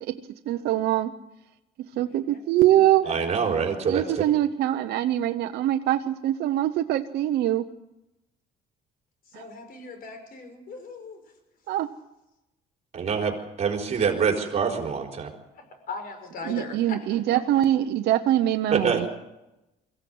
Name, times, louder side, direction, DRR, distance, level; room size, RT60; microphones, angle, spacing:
voice 1, 0.5-1.1 2.0-3.1 3.9-7.7 11.7-11.9 16.5-19.1, right 13 dB, 75° right, 6 dB, 0.9 m, -23 dB
voice 2, 2.0-2.4 2.7-3.4 9.3-11.2 15.5-17.2 17.5-17.6, left 3 dB, 60° left, 7 dB, 5.7 m, -40 dB
voice 3, 3.0-4.2 12.9-15.3 18.7-19.1, right 6 dB, 40° right, 1 dB, 4.3 m, -25 dB
23.0 x 16.0 x 7.9 m, 0.96 s
cardioid pair, 110°, 17 cm